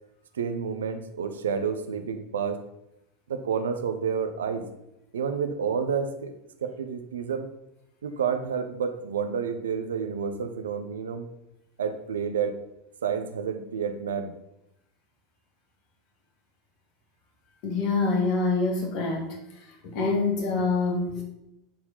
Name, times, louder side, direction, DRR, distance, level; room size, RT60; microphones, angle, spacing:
voice 1, 0.3-2.6 3.3-4.6 5.1-6.3 6.6-7.5 8.0-11.3 11.8-12.5 13.0-14.3, right 6 dB, 75° right, 7 dB, 1.0 m, -29 dB
voice 2, 17.6-19.3 19.8-21.2, left 3 dB, 50° left, 2 dB, 2.4 m, -25 dB
10.5 x 4.7 x 5.6 m, 0.84 s
figure-of-eight pair, 80°, 0 cm